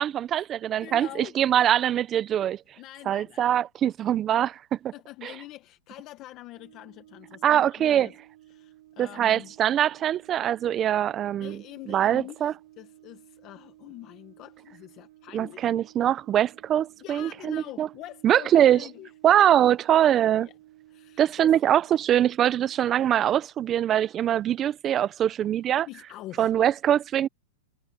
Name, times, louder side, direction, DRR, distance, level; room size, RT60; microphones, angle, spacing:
voice 1, 0.0-2.6 3.1-4.6 4.8-4.9 5.2-5.3 7.4-8.1 9.0-11.6 11.9-12.5 15.3-17.9 18.2-18.8 19.2-20.5 21.2-25.9 26.4-27.3, right 11 dB, 20° right, 0.5 m, -23 dB
voice 2, 0.8-1.4 2.8-3.5 4.9-8.2 8.5-9.5 11.4-15.7 17.0-19.1 20.4-20.5 20.9-21.6 25.9-26.5, left 16 dB, 30° left, 1.2 m, -44 dB
Brass instrument, 6.5-22.9, right 15 dB, 60° right, 7.9 m, -54 dB
supercardioid pair, 160°, 0 cm